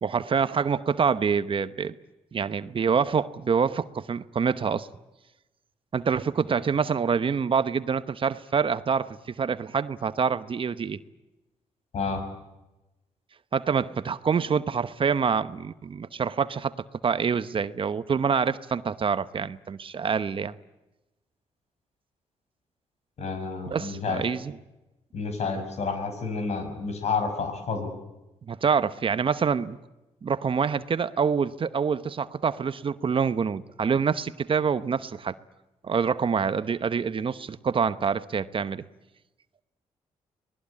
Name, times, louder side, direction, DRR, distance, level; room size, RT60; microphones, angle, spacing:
voice 1, 0.0-1.9 2.3-4.9 5.9-11.0 13.5-16.7 17.0-20.5 23.7-24.6 28.5-29.8 30.2-35.3 35.8-38.8, right 6 dB, 45° right, 1.0 m, -26 dB
voice 2, 23.2-24.2 25.1-27.9, left 4 dB, 65° left, 6.1 m, -30 dB
25.0 x 19.5 x 8.6 m
cardioid pair, 75°, 12 cm